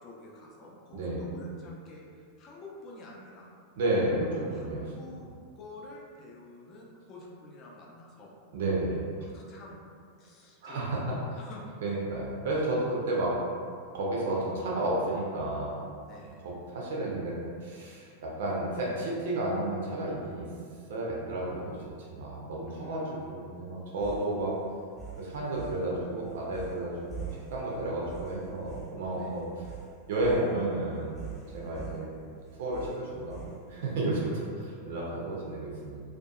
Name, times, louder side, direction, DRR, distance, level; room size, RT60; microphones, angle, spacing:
voice 1, 0.0-3.5 4.1-8.3 9.2-9.8 10.2-11.1 11.3-11.7 16.0-16.5 22.6-23.4 29.1-29.4 31.6-32.1, left 2 dB, 35° left, -3 dB, 0.5 m, -49 dB
voice 2, 0.9-1.3 3.8-4.8 8.5-9.1 10.6-11.2 11.8-13.4 13.9-15.8 16.4-20.5 20.9-24.5 25.2-29.5 30.1-31.2 31.5-32.1 32.6-36.0, right 1 dB, 55° right, -4 dB, 0.4 m, -32 dB
sound 1, 24.0-34.0, right 6 dB, ahead, 0.8 m, -45 dB
2.6 x 2.2 x 2.3 m, 2.2 s
figure-of-eight pair, 90°, 0 cm